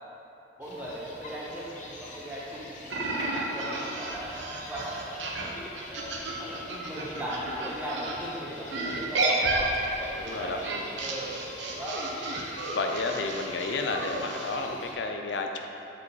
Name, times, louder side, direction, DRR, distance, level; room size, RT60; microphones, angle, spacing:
sound 1, 0.6-14.9, left 1 dB, 40° left, 0.9 m, -45 dB
voice 1, 0.6-5.4 5.9-12.1, equal, 10° right, -8 dB, 1.3 m, -38 dB
sound 2, 2.9-8.1 8.7-14.6, right 2 dB, 80° right, 0.9 m, -32 dB
voice 2, 10.1-10.6 12.7-15.6, left 3 dB, 75° left, 3 dB, 0.5 m, -31 dB
7.5 x 5.1 x 4.0 m, 2.8 s
head